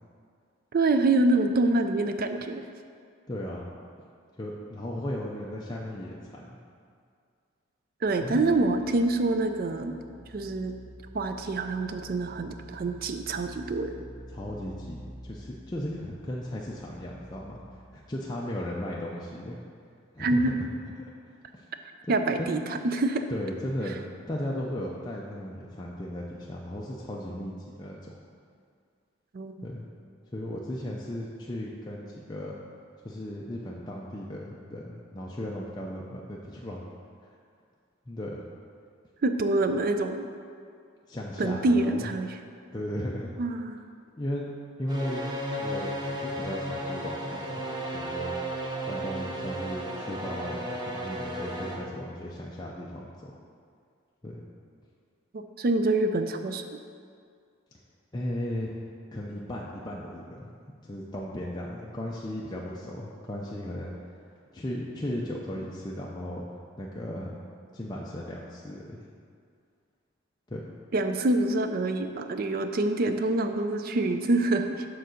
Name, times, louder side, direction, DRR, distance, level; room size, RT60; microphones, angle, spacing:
voice 1, 0.7-2.6 8.0-9.9 10.3-10.7 11.1-13.9 20.2-20.5 22.1-23.2 29.3-29.5 39.2-40.2 41.4-42.3 43.4-43.8 55.3-56.6 70.9-74.8, right 2 dB, 45° right, 7 dB, 0.4 m, -26 dB
voice 2, 3.3-3.7 4.4-6.6 8.2-8.6 14.3-19.6 20.1-20.7 21.2-21.6 22.1-22.6 23.3-28.1 29.6-29.9 30.3-32.5 33.0-36.8 38.1-38.4 41.1-42.1 42.7-43.3 44.2-44.5 44.8-45.3 45.6-47.7 47.9-53.4 54.2-54.4 58.1-58.7 59.1-60.6 60.8-63.9 64.3-66.4 66.8-67.4 67.7-69.0 70.5-70.6, left 1 dB, 20° left, -4 dB, 0.5 m, -36 dB
sound 1, 8.0-18.0, equal, 65° right, 0.9 m, -48 dB
sound 2, 44.9-51.8, right 1 dB, 20° right, 0.8 m, -34 dB
6.8 x 3.9 x 6.4 m, 2.2 s
head